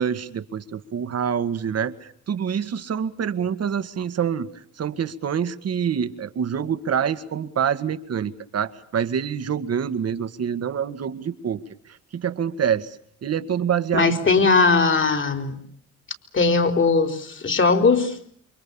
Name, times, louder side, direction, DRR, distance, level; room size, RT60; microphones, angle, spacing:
voice 1, 0.0-11.6 11.9-13.0 13.2-14.5, right 8 dB, 55° right, 13 dB, 2.0 m, -26 dB
voice 2, 13.9-15.6 16.3-18.2, left 4 dB, 40° left, 8 dB, 4.4 m, -19 dB
28.5 x 24.5 x 7.2 m, 0.66 s
cardioid pair, 90°, 30 cm